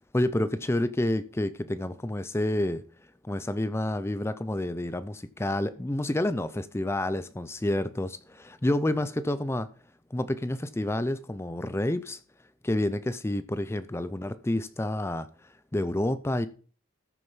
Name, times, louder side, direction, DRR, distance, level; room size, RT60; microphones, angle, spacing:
voice 1, 0.1-2.8 3.2-9.7 10.1-12.2 12.6-16.5, left 1 dB, 10° left, 0.4 m, -29 dB
13.5 x 6.6 x 5.5 m
head